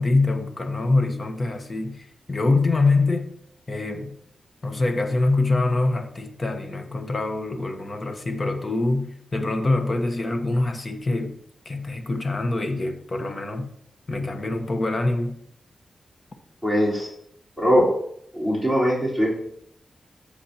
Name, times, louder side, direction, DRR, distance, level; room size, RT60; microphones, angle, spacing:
voice 1, 0.0-3.3 3.7-4.2 4.6-11.4 11.6-13.7 14.1-15.4, left 2 dB, 35° left, 5 dB, 1.2 m, -24 dB
voice 2, 16.6-17.1 17.6-17.9 18.3-19.4, equal, 10° left, -5 dB, 4.1 m, -21 dB
13.5 x 7.0 x 2.9 m, 0.70 s
wide cardioid pair, 125°, 0 cm